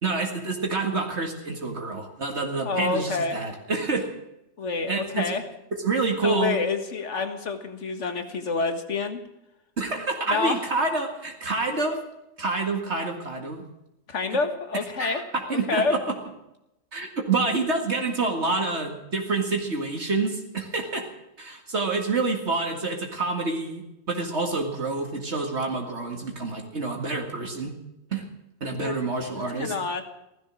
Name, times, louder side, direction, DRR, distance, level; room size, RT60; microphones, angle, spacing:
voice 1, 0.0-4.1 4.9-5.3 5.8-6.6 9.8-12.0 12.4-13.6 14.3-14.4 15.0-16.2 16.9-21.1 21.4-27.7 28.1-28.2 28.6-29.7, right 3 dB, 65° right, 1 dB, 2.2 m, -27 dB
voice 2, 2.6-3.4 4.6-5.4 6.2-9.2 10.3-10.7 14.1-15.2 15.5-16.0 28.7-28.9 29.4-30.0, left 4 dB, 75° left, 7 dB, 1.9 m, -27 dB
16.5 x 14.0 x 6.2 m, 0.88 s
omnidirectional pair, 1.2 m